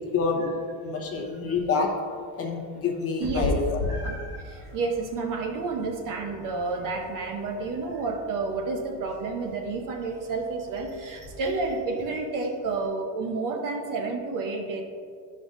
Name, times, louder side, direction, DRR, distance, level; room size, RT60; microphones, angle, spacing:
voice 1, 0.1-0.5 0.8-1.9 2.4-3.8, left 4 dB, 30° left, 0 dB, 0.9 m, -27 dB
voice 2, 0.9-1.3 3.2-14.8, right 3 dB, 45° right, 4 dB, 0.6 m, -30 dB
Meow, 3.2-12.9, left 2 dB, 5° right, 1.5 m, -38 dB
11.5 x 5.3 x 2.6 m, 2.2 s
cardioid pair, 165°, 48 cm